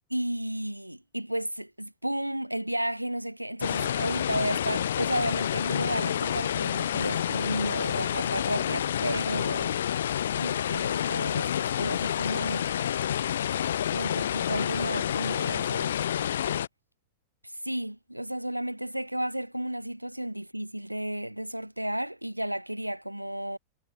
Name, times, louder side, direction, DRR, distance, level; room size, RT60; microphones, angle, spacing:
voice 1, 0.1-9.7 10.3-12.7 13.9-16.0 17.4-23.6, right 1 dB, 90° right, 6.3 m, -33 dB
sound 1, 3.6-16.7, left 10 dB, 65° left, 1.3 m, -29 dB
figure-of-eight pair, 90°, 0 cm